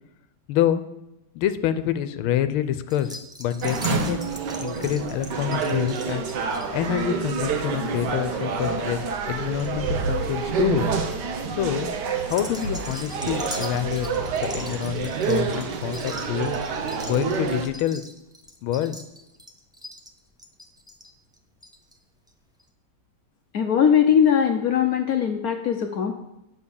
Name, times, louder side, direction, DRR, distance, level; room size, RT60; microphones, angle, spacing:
voice 1, 0.5-0.8 1.3-4.2 4.6-6.3 6.7-10.9 11.5-11.9 12.2-14.1 14.4-16.6 17.0-18.0 18.6-19.0, left 11 dB, 90° left, 12 dB, 1.5 m, -26 dB
sound 1, 2.9-9.7 10.0-10.5 11.0-11.3 12.2-22.0 22.3-22.4 22.6-22.7, left 1 dB, 5° right, 0.5 m, -42 dB
sound 2, 3.6-17.7, right 5 dB, 60° right, 1.4 m, -28 dB
voice 2, 23.5-26.1, left 8 dB, 60° left, 5 dB, 1.0 m, -20 dB
9.7 x 6.4 x 7.0 m, 0.89 s
omnidirectional pair, 2.3 m